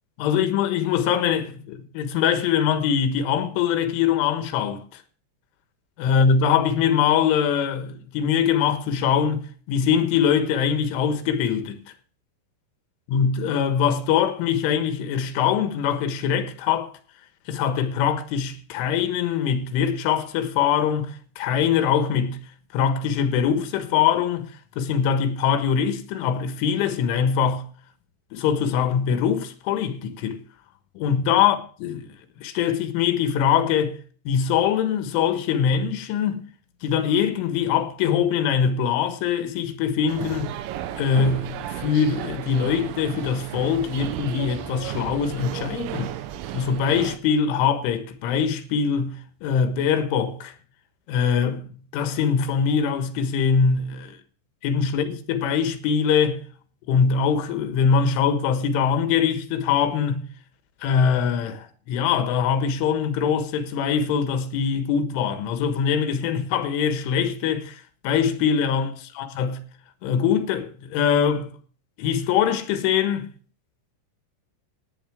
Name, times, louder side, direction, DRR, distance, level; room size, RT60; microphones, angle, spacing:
voice 1, 0.2-5.0 6.0-11.8 13.1-16.9 17.5-22.4 22.7-27.6 28.3-30.4 31.0-32.1 32.4-34.0 34.3-36.4 36.8-40.5 40.9-46.1 46.5-50.5 51.1-54.2 54.6-56.4 56.9-60.3 60.8-69.6 70.0-71.5 72.0-73.3, left 7 dB, 85° left, 3.9 m, -23 dB
sound 1, 40.1-47.2, right 12 dB, 80° right, 3.3 m, -33 dB
16.5 x 9.9 x 3.5 m
omnidirectional pair, 5.4 m